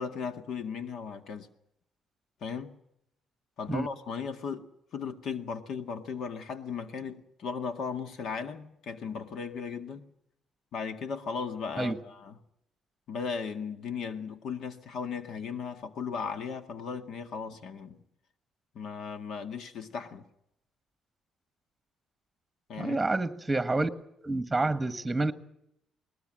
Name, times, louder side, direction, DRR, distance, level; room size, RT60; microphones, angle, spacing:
voice 1, 0.0-1.5 2.4-2.7 3.6-10.0 10.7-12.4 13.1-18.0 18.7-20.3 22.7-23.0, left 6 dB, 65° left, 2.0 m, -36 dB
voice 2, 22.8-23.9 24.2-25.3, right 2 dB, 10° right, 1.5 m, -28 dB
20.5 x 19.5 x 7.6 m
cardioid pair, 105°, 0 cm